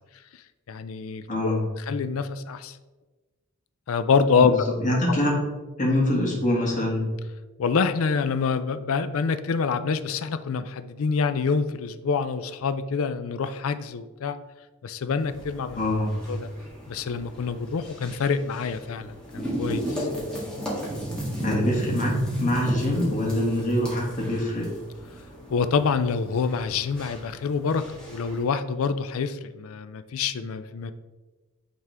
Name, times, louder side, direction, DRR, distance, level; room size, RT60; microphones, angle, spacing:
voice 1, 0.7-1.6 1.9-2.8 3.9-5.2 7.6-14.4 14.8-15.8 16.3-16.5 16.9-20.1 25.5-30.9, left 5 dB, 70° left, 11 dB, 0.4 m, -26 dB
voice 2, 1.3-1.6 4.4-4.5 4.8-5.4 5.8-7.0 15.7-16.1 21.4-22.1 22.4-24.7, left 1 dB, 35° left, -3 dB, 1.7 m, -24 dB
sound 1, 15.2-28.4, equal, 5° left, 1.7 m, -34 dB
9.1 x 3.6 x 3.4 m, 1.2 s
head